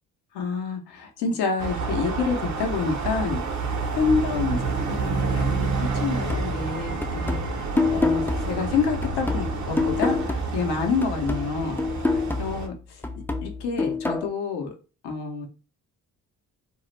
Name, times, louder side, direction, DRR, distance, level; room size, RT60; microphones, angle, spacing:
voice 1, 0.3-3.4 3.9-5.7 6.0-7.4 7.9-13.0 13.4-14.7 15.0-15.5, left 5 dB, 80° left, 3 dB, 0.7 m, -28 dB
sound 1, 1.6-12.7, right 4 dB, 45° right, 0.7 m, -29 dB
sound 2, 6.3-10.7 11.0-14.3, left 3 dB, 5° left, 0.3 m, -28 dB
2.3 x 2.0 x 3.1 m, 0.35 s
hypercardioid pair, 45°, 39 cm